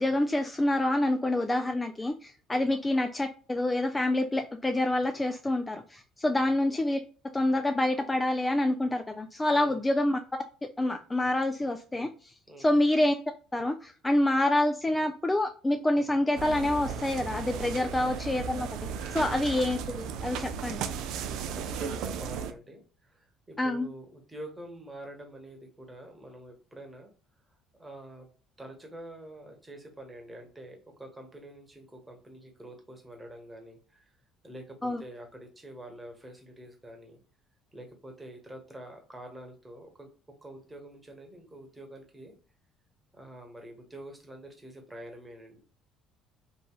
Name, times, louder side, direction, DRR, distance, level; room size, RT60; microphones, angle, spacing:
voice 1, 0.0-7.0 7.3-10.2 10.8-13.1 13.5-18.7 19.1-20.8 23.6-23.9 34.8-35.0, left 1 dB, 20° left, 6 dB, 0.3 m, -27 dB
sound 1, 16.4-22.5, right 7 dB, 65° right, 0.3 m, -35 dB
voice 2, 19.0-19.4 21.2-27.1 27.8-28.3 28.6-34.1 34.4-37.2 37.7-40.1 40.4-42.3 43.1-45.6, right 1 dB, 15° right, 2 dB, 1.1 m, -46 dB
3.0 x 2.5 x 2.2 m, 0.39 s
hypercardioid pair, 55°, 0 cm